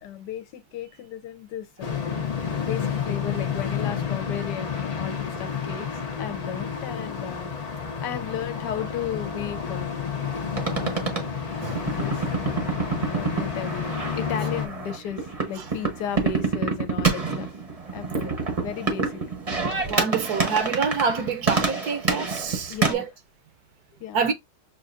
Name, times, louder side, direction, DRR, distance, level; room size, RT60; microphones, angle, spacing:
voice 1, 0.0-2.2 2.6-7.7 8.0-10.3 10.7-11.1 11.9-12.2 13.1-17.5 17.9-19.2 22.7-23.0 24.0-24.3, left 9 dB, 80° left, 1.2 m, -35 dB
sound 1, 1.8-14.7, left 7 dB, 55° left, 0.4 m, -30 dB
sound 2, 10.6-22.9, right 4 dB, 30° right, 0.7 m, -28 dB
voice 2, 19.8-23.1 24.1-24.3, right 5 dB, 65° right, 1.2 m, -27 dB
6.4 x 2.5 x 2.5 m
omnidirectional pair, 1.9 m